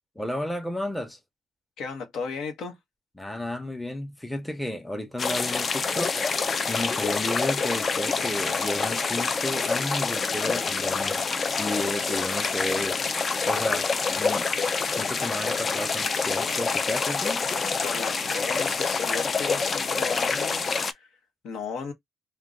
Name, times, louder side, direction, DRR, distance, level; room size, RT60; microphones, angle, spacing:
voice 1, 0.2-1.2 3.2-11.2 11.6-13.0 13.5-14.5 14.8-17.4, left 1 dB, 5° left, 0.8 m, -33 dB
voice 2, 1.8-2.8 12.0-12.2 17.8-21.1 21.4-21.9, left 5 dB, 80° left, 1.0 m, -35 dB
sound 1, 5.2-20.9, left 4 dB, 40° left, 0.4 m, -27 dB
2.4 x 2.2 x 3.8 m
cardioid pair, 90°, 0 cm